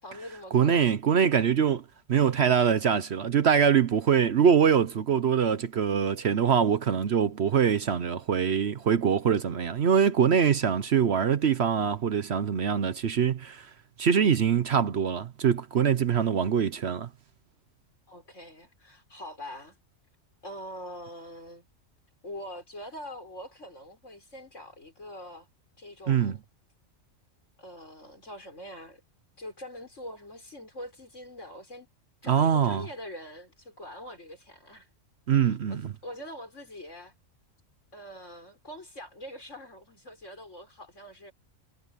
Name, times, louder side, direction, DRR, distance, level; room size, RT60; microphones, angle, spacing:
voice 1, 0.0-0.8 18.1-19.8 20.4-21.7 22.2-25.5 25.8-26.4 27.6-29.0 29.4-31.9 32.2-34.9 35.3-37.1 37.9-41.3, left 1 dB, 65° left, 6.3 m, -43 dB
voice 2, 0.5-13.7 14.0-17.1 26.1-26.4 32.3-32.9 35.3-35.9, right 7 dB, 55° right, 1.0 m, -24 dB
omnidirectional pair, 1.4 m